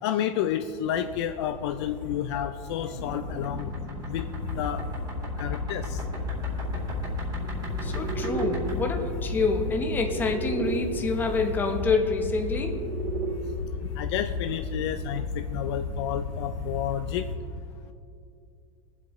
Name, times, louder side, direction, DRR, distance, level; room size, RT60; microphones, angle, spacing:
voice 1, 0.0-3.7 4.1-4.3 4.5-4.8 5.4-6.0 14.0-17.3, left 10 dB, 50° left, 8 dB, 0.4 m, -30 dB
sound 1, 0.9-17.4, left 3 dB, 70° left, 1.4 m, -34 dB
sound 2, 2.9-10.8 12.1-13.3, right 4 dB, 25° right, 1.8 m, -37 dB
voice 2, 7.8-12.8, left 3 dB, 10° left, 3 dB, 0.9 m, -27 dB
21.5 x 7.9 x 3.1 m, 2.5 s
supercardioid pair, 170°, 18 cm